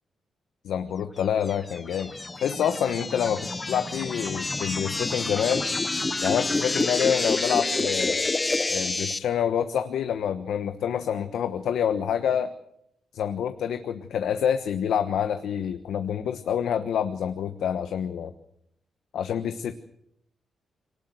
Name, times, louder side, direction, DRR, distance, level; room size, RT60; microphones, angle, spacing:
voice 1, 0.7-2.1 2.4-5.7 6.2-8.3 8.7-12.5 13.1-18.3 19.1-19.7, left 8 dB, 85° left, 9 dB, 1.2 m, -27 dB
sound 1, 1.5-9.2, left 3 dB, 20° left, 0.8 m, -28 dB
23.5 x 19.0 x 7.9 m, 0.75 s
cardioid pair, 110°, 0 cm